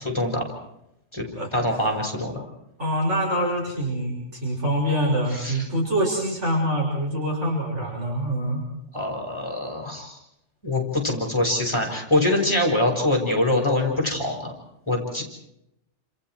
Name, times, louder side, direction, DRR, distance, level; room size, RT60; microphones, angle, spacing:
voice 1, 0.0-0.5 1.1-1.3 1.5-2.4 5.3-5.6 8.9-10.2 10.6-14.5 14.9-15.2, left 1 dB, 25° left, 1 dB, 5.7 m, -24 dB
voice 2, 2.8-8.6, equal, 75° right, -1 dB, 6.5 m, -25 dB
30.0 x 28.0 x 4.6 m, 0.82 s
omnidirectional pair, 1.2 m